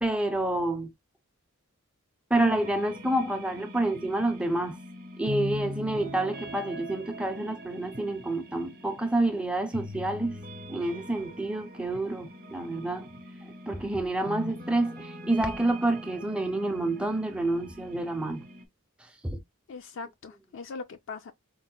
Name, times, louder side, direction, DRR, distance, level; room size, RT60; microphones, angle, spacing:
voice 1, 0.0-0.9 2.3-4.8 5.2-10.4 10.7-13.1 13.4-18.4 19.2-19.4, right 1 dB, 5° right, 0.5 m, -28 dB
sound 1, 2.3-18.7, left 1 dB, 45° right, 0.7 m, -42 dB
voice 2, 19.7-21.3, left 4 dB, 60° left, 0.4 m, -40 dB
4.5 x 2.1 x 2.2 m
head